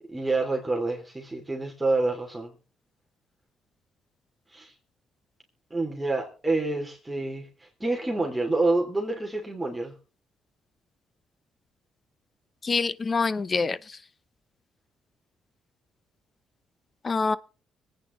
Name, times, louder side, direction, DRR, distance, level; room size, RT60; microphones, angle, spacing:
voice 1, 0.1-2.5 4.5-4.7 5.7-9.9, right 2 dB, 10° right, 2.8 m, -28 dB
voice 2, 12.6-13.8 17.0-17.4, left 4 dB, 35° left, 0.7 m, -25 dB
25.0 x 9.1 x 3.1 m
cardioid pair, 90°, 0 cm